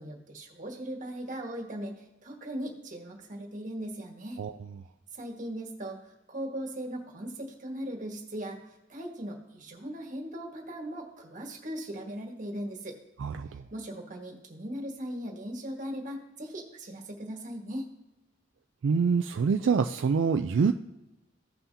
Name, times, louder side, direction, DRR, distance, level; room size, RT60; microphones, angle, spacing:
voice 1, 0.0-4.4 5.1-8.6 8.9-13.0 13.7-17.9, right 1 dB, 45° right, 1 dB, 1.6 m, -38 dB
voice 2, 18.8-20.7, right 5 dB, 80° right, 6 dB, 0.3 m, -25 dB
15.5 x 5.7 x 2.8 m, 1.0 s
head